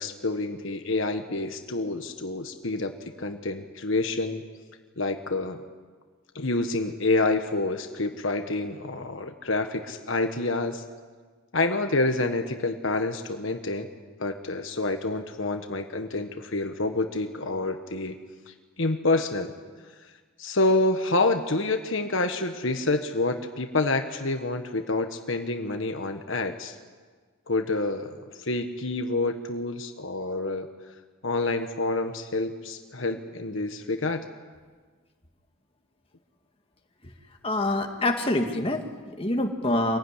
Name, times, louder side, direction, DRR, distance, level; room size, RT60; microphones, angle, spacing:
voice 1, 0.0-2.9 3.2-4.4 5.0-5.6 6.3-10.8 11.5-13.9 14.2-18.1 18.5-19.5 20.4-26.8 27.5-30.7 31.2-34.2, left 2 dB, 65° left, 6 dB, 1.4 m, -28 dB
voice 2, 37.4-40.0, left 1 dB, 25° left, 3 dB, 1.9 m, -26 dB
26.0 x 16.5 x 10.0 m, 1.5 s
head